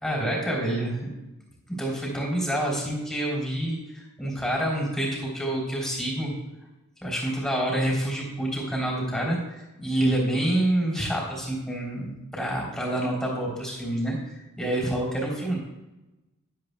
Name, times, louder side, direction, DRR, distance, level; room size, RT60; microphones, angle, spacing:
voice 1, 0.0-1.1 1.7-6.3 7.0-15.6, right 1 dB, 5° left, -3 dB, 3.5 m, -27 dB
13.0 x 11.0 x 2.3 m, 1.0 s
head